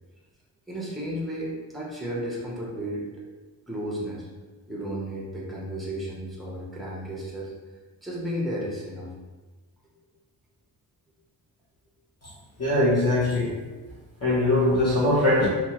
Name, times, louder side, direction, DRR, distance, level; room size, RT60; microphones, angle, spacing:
voice 1, 0.7-3.1 3.7-4.3 4.7-7.5 8.0-9.1, equal, ahead, -5 dB, 0.5 m, -33 dB
voice 2, 12.6-13.5 14.2-15.5, left 1 dB, 45° left, -7 dB, 0.8 m, -21 dB
2.9 x 2.2 x 2.8 m, 1.2 s
wide cardioid pair, 165°, 37 cm